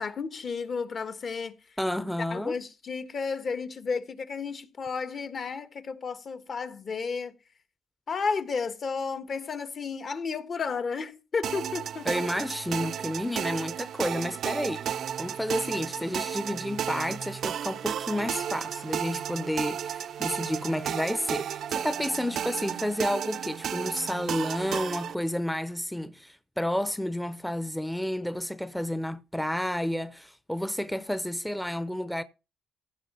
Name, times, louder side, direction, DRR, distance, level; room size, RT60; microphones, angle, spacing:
voice 1, 0.0-1.5 2.3-7.3 8.1-12.3, left 5 dB, 50° left, 1.5 m, -32 dB
voice 2, 1.8-2.6 12.1-32.2, left 1 dB, 5° left, 0.7 m, -31 dB
sound 1, 11.4-25.1, right 9 dB, 65° right, 0.5 m, -33 dB
15.5 x 5.9 x 5.6 m
cardioid pair, 90°, 0 cm